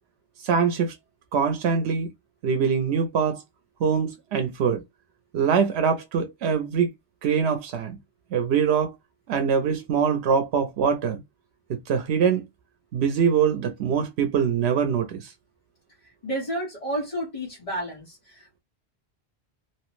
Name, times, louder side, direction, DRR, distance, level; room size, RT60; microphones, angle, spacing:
voice 1, 0.4-1.0 1.3-2.1 2.4-3.4 3.8-4.8 5.3-6.9 7.2-8.0 8.3-8.9 9.3-11.2 11.7-12.4 12.9-15.3, right 6 dB, 90° right, 0.8 m, -23 dB
voice 2, 16.2-18.6, right 1 dB, 35° left, 1.0 m, -31 dB
2.9 x 2.0 x 3.0 m
omnidirectional pair, 1.1 m